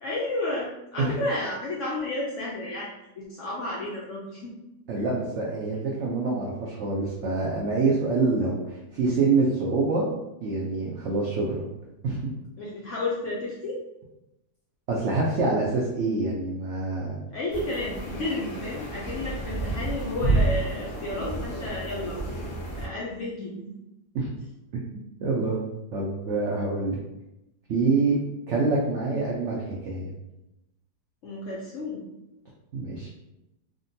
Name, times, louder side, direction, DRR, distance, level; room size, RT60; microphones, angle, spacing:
voice 1, 0.0-4.5 12.6-13.8 17.3-22.2 22.7-23.7 31.2-32.1, left 2 dB, 75° left, -5 dB, 0.7 m, -32 dB
voice 2, 4.9-10.1 10.4-11.6 12.0-12.3 14.9-17.2 24.1-24.3 24.9-25.6 25.9-27.0 27.7-28.2 28.5-30.1 32.7-33.1, right 3 dB, 80° right, -3 dB, 0.6 m, -26 dB
sound 1, 17.5-22.8, right 2 dB, 60° left, 1.1 m, -30 dB
3.6 x 2.1 x 2.6 m, 0.93 s
omnidirectional pair, 1.8 m